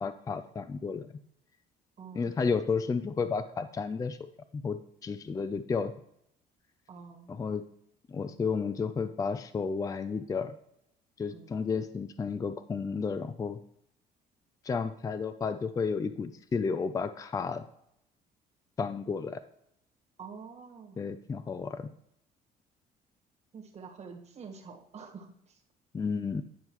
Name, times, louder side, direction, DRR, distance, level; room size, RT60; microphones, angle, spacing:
voice 1, 0.0-1.1 2.1-4.3 4.6-5.9 7.3-7.6 8.1-10.6 11.2-13.6 14.6-17.6 18.8-19.4 21.0-21.9 25.9-26.4, left 5 dB, 20° left, 12 dB, 0.4 m, -32 dB
voice 2, 2.0-2.4 6.9-7.3 11.3-11.5 20.2-21.0 23.5-25.6, right 5 dB, 40° right, 2 dB, 1.5 m, -47 dB
9.8 x 5.4 x 3.0 m, 0.74 s
cardioid pair, 110°, 17 cm